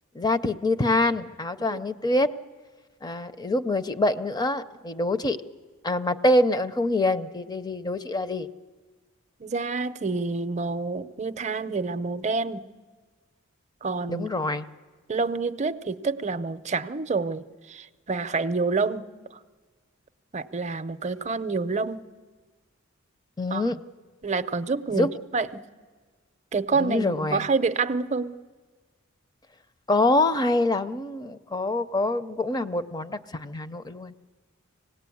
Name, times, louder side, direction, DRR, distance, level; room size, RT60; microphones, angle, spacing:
voice 1, 0.1-2.3 3.0-5.4 5.8-8.5 14.1-14.7 23.4-23.8 24.9-25.1 26.7-27.4 29.9-34.1, left 2 dB, 20° left, 11 dB, 0.6 m, -25 dB
voice 2, 9.4-12.7 13.8-14.3 15.1-19.1 20.3-22.0 23.5-23.6 24.2-25.6 26.5-28.4, right 4 dB, 35° right, 12 dB, 0.6 m, -28 dB
25.5 x 18.5 x 8.5 m, 1.4 s
head